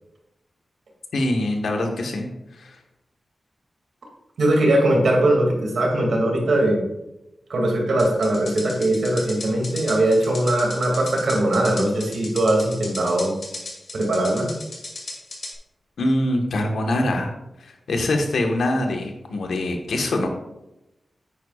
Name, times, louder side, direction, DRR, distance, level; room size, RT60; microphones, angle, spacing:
voice 1, 1.1-2.3 2.5-2.8 16.0-17.3 17.6-20.3, left 1 dB, 85° left, 3 dB, 1.4 m, -24 dB
voice 2, 4.4-6.8 7.5-13.3 13.9-14.5, right 1 dB, 70° right, 0 dB, 2.5 m, -20 dB
sound 1, 8.0-15.5, left 2 dB, 50° left, 2.4 m, -35 dB
9.9 x 9.1 x 2.5 m, 0.92 s
wide cardioid pair, 175°, 0 cm